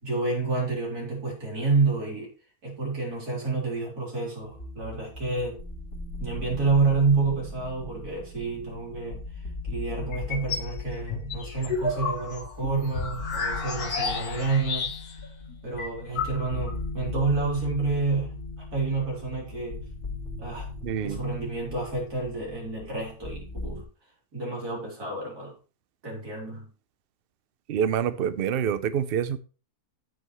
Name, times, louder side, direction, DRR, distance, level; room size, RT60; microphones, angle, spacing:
voice 1, 0.0-2.3 2.6-5.6 6.2-15.2 15.6-19.8 20.4-20.7 21.0-23.8 24.3-25.5 26.0-26.7, right 4 dB, 90° right, -3 dB, 4.1 m, -29 dB
sound 1, 4.4-23.8, left 3 dB, 50° left, 2.3 m, -38 dB
sound 2, 10.1-10.7 11.1-15.3 15.5-15.6 15.8-16.8, left 4 dB, 85° left, 2.0 m, -31 dB
voice 2, 20.8-21.2 27.7-29.4, right 8 dB, 50° right, 13 dB, 0.7 m, -26 dB
14.5 x 5.6 x 3.2 m, 0.36 s
omnidirectional pair, 1.6 m